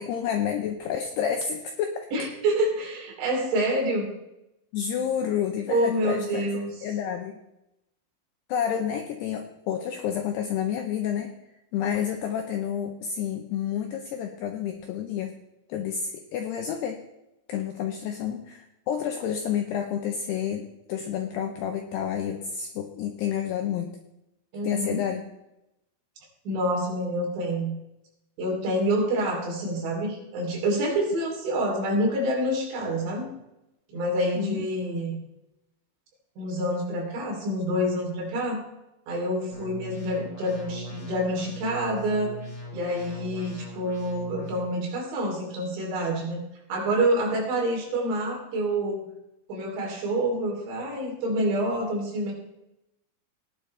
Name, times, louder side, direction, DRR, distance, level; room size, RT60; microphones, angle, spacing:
voice 1, 0.0-2.1 4.7-6.5 6.8-7.3 8.5-11.3 11.7-15.3 15.7-17.0 17.5-23.9 24.6-25.2 34.4-34.7, left 8 dB, 90° left, 4 dB, 2.3 m, -29 dB
voice 2, 2.1-4.1 5.7-6.7 24.5-25.0 26.5-27.7 28.4-33.3 33.9-35.2 36.4-38.6 39.1-42.4 42.7-46.4 46.7-49.1 49.5-52.3, right 1 dB, 65° right, -1 dB, 5.2 m, -27 dB
sound 1, 39.5-44.5, equal, 20° left, 5.2 m, -40 dB
18.0 x 10.5 x 3.3 m, 0.90 s
omnidirectional pair, 5.8 m